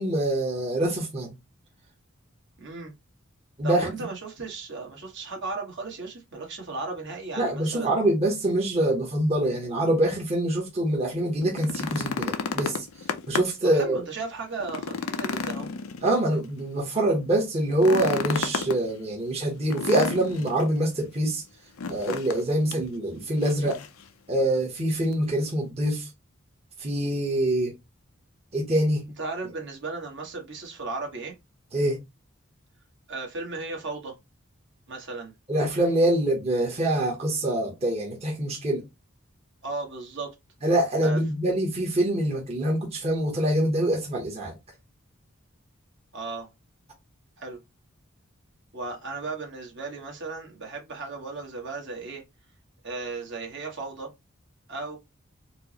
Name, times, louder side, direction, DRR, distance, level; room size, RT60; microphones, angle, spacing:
voice 1, 0.0-1.4 3.6-3.9 7.4-12.8 13.3-14.0 16.0-21.4 21.9-23.8 24.3-26.1 26.8-27.7 28.5-29.0 31.7-32.0 35.5-38.8 40.6-44.5, right 1 dB, 30° right, 0.9 m, -25 dB
voice 2, 2.6-2.9 3.6-7.9 13.7-15.7 29.2-31.3 33.1-34.2 34.9-35.3 39.6-40.3 41.0-41.2 46.1-46.5 47.4-47.6 48.7-52.2 52.8-54.1 54.7-55.0, right 3 dB, 60° right, 1.2 m, -35 dB
sound 1, 11.4-13.7 14.1-14.2 14.6-16.5 17.7-18.8 19.7-20.6 21.8-22.4 22.7-22.8 23.4-24.0 25.1-25.2, left 5 dB, 90° left, 0.5 m, -31 dB
4.4 x 2.0 x 2.8 m
head